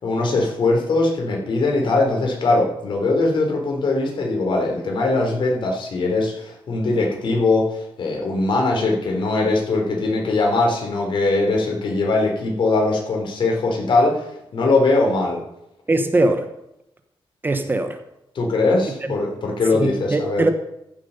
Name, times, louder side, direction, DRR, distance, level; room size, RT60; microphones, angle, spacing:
voice 1, 0.0-14.3 14.5-15.4 18.3-20.4, left 2 dB, 60° left, 0 dB, 3.8 m, -21 dB
voice 2, 15.9-16.5 17.4-18.0 19.8-20.5, right 2 dB, 20° right, 8 dB, 1.0 m, -20 dB
14.5 x 7.3 x 5.3 m, 0.84 s
cardioid pair, 120°, 9 cm